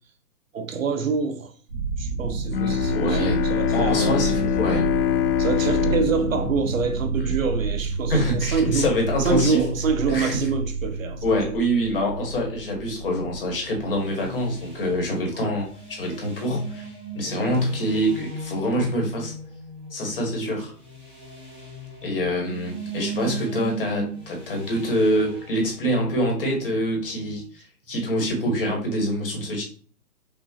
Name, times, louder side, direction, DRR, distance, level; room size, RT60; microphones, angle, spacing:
voice 1, 0.5-1.5 2.0-4.2 5.4-8.9 9.2-11.6 15.3-15.6 17.4-17.7 20.4-20.6, right 5 dB, 60° right, 0.6 m, -26 dB
sound 1, 1.7-15.6, right 4 dB, 40° right, 1.5 m, -30 dB
Bowed string instrument, 2.5-7.8, left 11 dB, 80° left, 0.5 m, -25 dB
voice 2, 2.9-3.4 3.7-4.8 7.2-7.3 8.1-9.7 10.1-10.5 11.2-19.3 19.9-20.7 22.0-29.6, equal, 35° left, 1.3 m, -25 dB
sound 2, 13.7-27.4, right 3 dB, 10° right, 1.0 m, -38 dB
5.8 x 2.4 x 2.8 m
hypercardioid pair, 170°, 46 cm